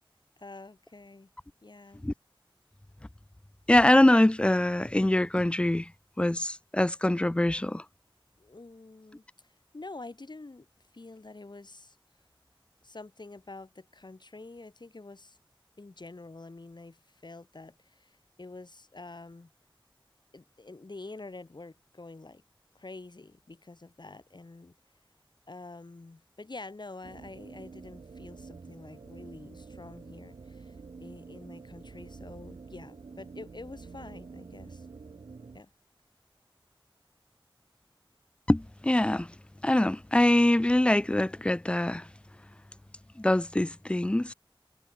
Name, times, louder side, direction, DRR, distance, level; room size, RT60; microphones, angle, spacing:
voice 1, 0.4-1.3 1.6-2.0 8.4-9.2 9.7-10.7 10.9-12.0 12.8-15.4 15.8-19.5 20.3-22.4 22.7-24.7 25.5-30.8 31.0-34.9 35.5-35.7, left 3 dB, 55° left, 2.2 m, -47 dB
voice 2, 3.7-5.9 6.2-7.8 38.5-39.3 39.6-42.1 43.2-44.3, left 1 dB, 10° left, 0.4 m, -24 dB
sound 1, 27.0-35.6, right 4 dB, 85° right, 0.7 m, -47 dB
wide cardioid pair, 60°, 9 cm